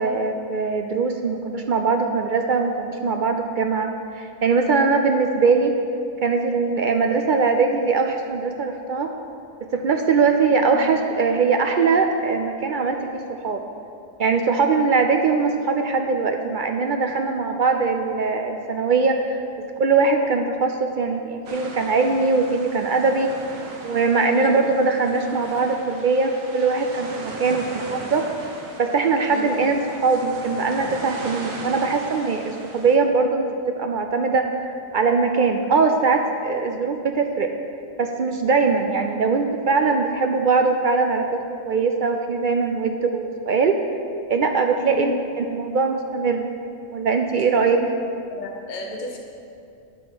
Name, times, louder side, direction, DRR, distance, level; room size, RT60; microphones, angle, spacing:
voice 1, 0.0-3.9 4.1-5.7 6.2-9.1 9.6-13.6 14.2-19.4 19.8-23.3 23.8-28.2 28.8-37.5 38.0-41.4 41.7-43.8 44.3-46.5 46.9-47.8, right 4 dB, 65° right, 5 dB, 0.5 m, -21 dB
sound 1, 21.5-33.0, right 2 dB, 85° right, 1.4 m, -38 dB
voice 2, 29.3-29.6 44.8-45.1 47.7-47.9 48.3-49.2, left 3 dB, 40° left, 1 dB, 1.1 m, -34 dB
11.5 x 4.3 x 7.3 m, 2.5 s
omnidirectional pair, 1.4 m